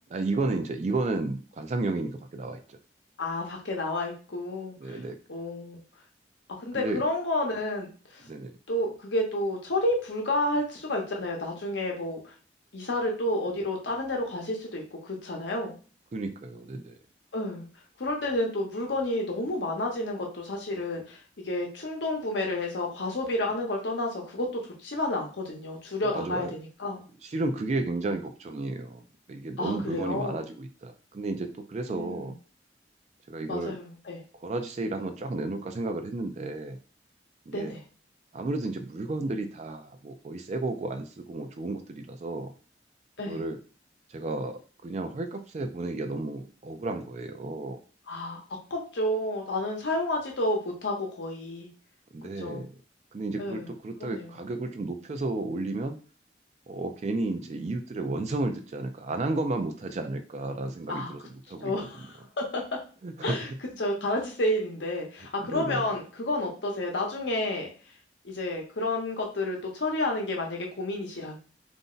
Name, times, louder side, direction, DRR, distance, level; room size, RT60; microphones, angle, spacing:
voice 1, 0.1-2.8 4.8-5.2 6.7-7.0 8.2-8.5 16.1-17.0 26.0-26.5 27.2-32.3 33.3-33.7 34.4-36.8 37.5-37.7 38.3-42.5 43.2-43.6 44.1-47.8 52.1-52.7 53.1-56.0 56.7-61.2 61.5-61.7 63.0-63.4 65.4-65.8, right 2 dB, 40° right, 7 dB, 0.3 m, -32 dB
voice 2, 3.2-5.0 5.3-5.8 6.6-8.2 8.7-12.3 12.7-15.8 17.3-17.7 18.0-21.2 21.4-27.0 28.1-28.2 29.6-30.4 31.9-32.3 33.5-34.2 37.5-37.8 43.2-43.4 48.1-51.7 52.4-52.7 53.4-53.7 54.0-54.3 60.9-61.1 61.6-62.6 63.2-63.5 63.8-67.7 68.2-71.4, left 1 dB, 80° left, 1 dB, 0.8 m, -30 dB
2.5 x 2.1 x 3.8 m, 0.37 s
head